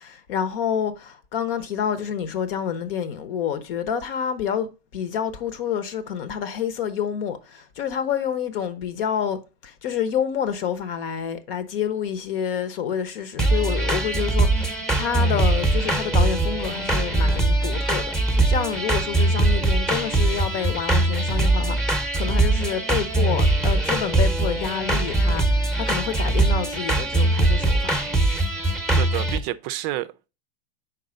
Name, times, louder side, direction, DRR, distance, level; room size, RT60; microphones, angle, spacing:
voice 1, 0.0-25.5 25.8-27.9, left 8 dB, 60° left, 1.0 m, -28 dB
sound 1, 13.4-29.4, right 2 dB, ahead, 0.8 m, -21 dB
voice 2, 29.0-30.3, right 15 dB, 45° right, 0.4 m, -29 dB
4.7 x 4.1 x 5.1 m
hypercardioid pair, 115°, 31 cm